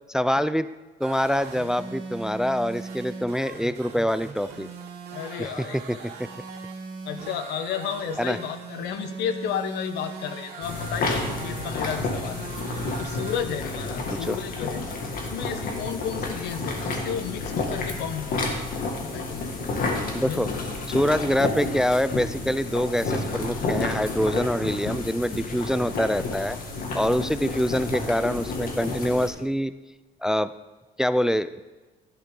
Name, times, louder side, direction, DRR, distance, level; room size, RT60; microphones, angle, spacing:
voice 1, 0.1-0.7 1.0-4.7 5.4-6.3 8.2-8.4 14.1-14.4 20.1-20.5 20.9-26.6 26.9-29.7 30.2-30.5 31.0-31.6, equal, 5° right, 14 dB, 0.3 m, -25 dB
sound 1, 1.0-13.4, right 5 dB, 75° right, 2.8 m, -39 dB
voice 2, 5.1-6.0 7.0-12.4 13.0-14.8 15.1-18.5 19.0-19.4 20.2-20.6, left 8 dB, 85° left, 9 dB, 1.0 m, -32 dB
sound 2, 10.6-29.3, left 3 dB, 60° left, 2.0 m, -30 dB
12.0 x 10.0 x 3.8 m, 1.2 s
cardioid pair, 110°, 17 cm